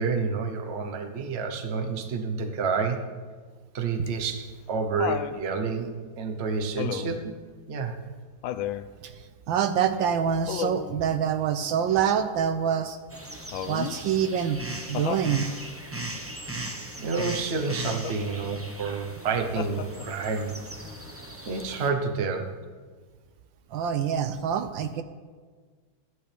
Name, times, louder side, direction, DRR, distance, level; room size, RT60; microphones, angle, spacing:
voice 1, 0.0-3.1 3.7-7.3 7.7-7.9 16.6-16.7 17.0-20.6 21.5-22.5, right 4 dB, 40° right, 5 dB, 1.0 m, -29 dB
Laughter, 4.1-5.4 6.8-7.3 8.4-8.9 10.5-11.0 13.5-14.0 14.9-15.3 17.7-18.2 19.6-20.2 21.6-21.7, left 11 dB, 80° left, 1.4 m, -33 dB
voice 2, 9.0-13.0 13.7-14.6 14.9-15.5 23.7-25.0, right 8 dB, 75° right, 8 dB, 1.3 m, -26 dB
sound 1, 13.1-21.9, right 1 dB, 15° right, 0.5 m, -38 dB
17.0 x 11.0 x 3.4 m, 1.6 s
omnidirectional pair, 2.2 m